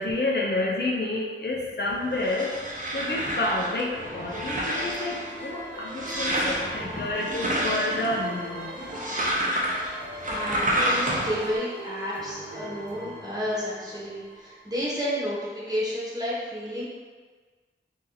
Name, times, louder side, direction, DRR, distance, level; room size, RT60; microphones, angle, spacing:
voice 1, 0.0-8.8, left 2 dB, 55° left, -2 dB, 0.5 m, -29 dB
sound 1, 1.9-11.6, equal, 40° right, 0.6 m, -30 dB
sound 2, 3.6-14.8, equal, 65° right, 1.0 m, -40 dB
voice 2, 10.3-16.9, equal, 20° right, -7 dB, 1.2 m, -31 dB
2.8 x 2.6 x 3.8 m, 1.5 s
wide cardioid pair, 55°, 20 cm